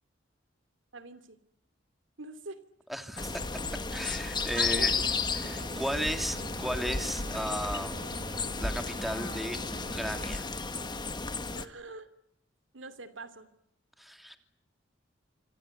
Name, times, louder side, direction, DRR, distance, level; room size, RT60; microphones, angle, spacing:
voice 1, 0.9-1.4 2.2-2.6 4.5-4.9 11.5-12.1 12.7-13.5, right 3 dB, 85° right, 12 dB, 2.7 m, -43 dB
voice 2, 2.9-3.3 3.9-4.9 5.3-8.2 8.6-10.5 14.0-14.4, equal, ahead, 6 dB, 2.9 m, -35 dB
sound 1, 3.2-11.6, left 4 dB, 25° left, 1.6 m, -33 dB
sound 2, 4.6-10.3, right 1 dB, 35° right, 1.3 m, -44 dB
26.0 x 26.0 x 8.3 m, 0.78 s
head